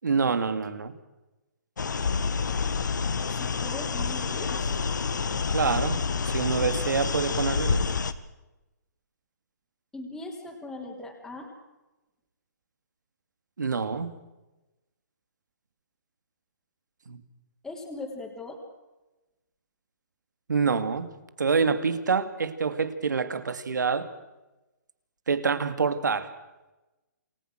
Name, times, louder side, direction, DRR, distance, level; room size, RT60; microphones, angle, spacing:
voice 1, 0.0-0.9 5.5-6.0 6.2-7.9 13.6-14.1 17.1-17.2 20.5-21.1 21.4-24.1 25.3-26.3, right 5 dB, 85° right, 12 dB, 2.6 m, -26 dB
sound 1, 1.8-8.1, left 5 dB, 85° left, 1.9 m, -28 dB
voice 2, 3.3-4.8 9.9-11.5 17.6-18.6, left 2 dB, 5° left, -2 dB, 3.5 m, -39 dB
29.0 x 20.0 x 6.4 m, 1.0 s
hypercardioid pair, 160°, 10 cm